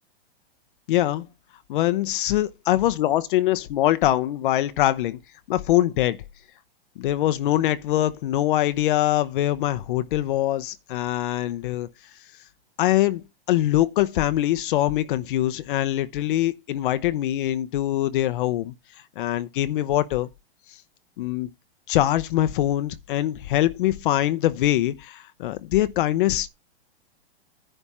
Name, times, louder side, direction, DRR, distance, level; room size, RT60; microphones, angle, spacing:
voice 1, 0.9-1.3 1.7-5.2 5.5-6.2 7.0-11.9 12.8-18.7 19.2-20.3 21.2-21.5 21.9-26.5, left 14 dB, 55° left, 0.7 m, -23 dB
10.0 x 3.5 x 7.1 m
hypercardioid pair, 140°, 32 cm